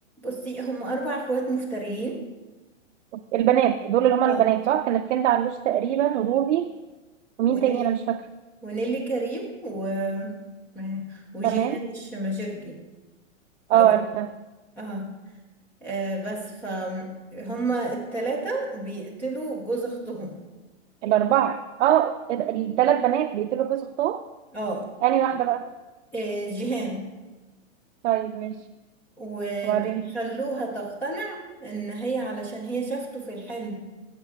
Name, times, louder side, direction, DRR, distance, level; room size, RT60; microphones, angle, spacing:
voice 1, 0.2-2.2 4.3-4.4 7.5-7.9 8.6-10.4 10.7-12.8 13.7-13.9 14.8-15.1 15.8-20.4 24.5-24.9 26.1-27.0 29.2-33.7, right 2 dB, 5° left, -2 dB, 0.5 m, -31 dB
voice 2, 3.1-6.7 7.4-8.2 11.4-11.8 13.7-14.3 21.0-24.2 25.0-25.7 28.0-28.6 29.6-30.2, right 11 dB, 65° right, 7 dB, 0.5 m, -22 dB
14.5 x 7.3 x 3.5 m, 1.2 s
hypercardioid pair, 165°, 39 cm